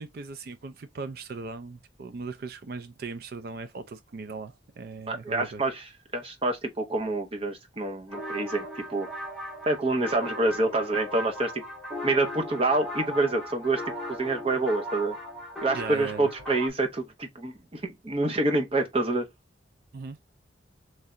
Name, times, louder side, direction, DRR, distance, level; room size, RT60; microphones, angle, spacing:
voice 1, 0.0-5.6 15.7-16.3 19.9-20.2, right 4 dB, 50° right, 0.4 m, -38 dB
voice 2, 5.1-9.1 9.7-11.6 12.0-13.8 14.1-15.2 15.6-19.2, right 2 dB, 30° right, 0.8 m, -27 dB
sound 1, 8.1-16.7, left 1 dB, ahead, 1.1 m, -37 dB
3.2 x 2.7 x 3.6 m
head